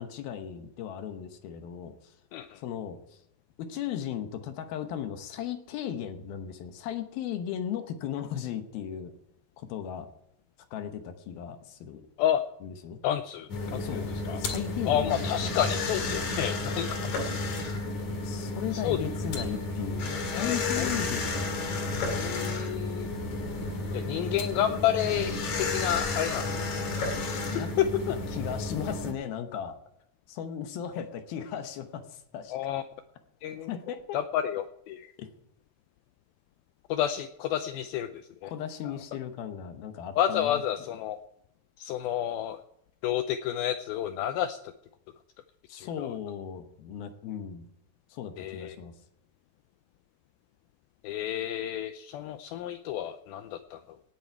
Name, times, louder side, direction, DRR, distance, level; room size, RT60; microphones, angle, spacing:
voice 1, 0.0-2.1 2.6-3.2 3.6-9.1 9.6-10.1 10.7-12.0 12.6-13.0 13.8-15.8 18.2-21.9 27.5-27.7 28.1-29.8 30.3-32.6 33.7-34.2 35.2-35.3 38.4-40.6 45.7-47.7 48.1-48.9, left 9 dB, 70° left, 7 dB, 2.7 m, -36 dB
voice 2, 2.3-2.6 12.2-12.4 13.0-14.4 14.9-17.0 18.7-19.0 20.3-20.9 22.1-23.1 23.9-26.8 27.3-27.5 27.8-27.9 32.5-32.8 33.4-33.7 34.1-35.1 36.9-38.1 38.4-38.5 38.8-38.9 40.2-41.2 41.8-42.6 43.0-44.6 45.7-46.1 48.4-48.8 51.0-54.0, left 11 dB, 90° left, 9 dB, 2.1 m, -30 dB
sound 1, 13.5-29.1, left 2 dB, 50° left, 2.8 m, -32 dB
18.0 x 8.6 x 4.6 m, 0.77 s
omnidirectional pair, 4.9 m